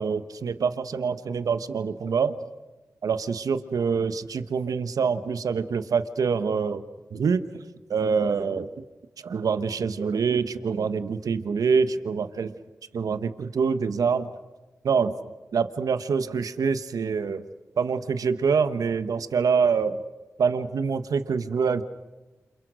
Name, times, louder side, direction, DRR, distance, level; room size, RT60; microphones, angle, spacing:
voice 1, 0.0-2.4 3.0-6.8 7.1-7.6 7.9-8.7 9.2-12.5 12.9-14.3 14.8-15.1 15.5-17.4 17.8-20.0 20.4-21.8, right 5 dB, 75° right, 11 dB, 1.2 m, -25 dB
29.0 x 27.5 x 6.4 m, 1.1 s
cardioid pair, 40°, 6 cm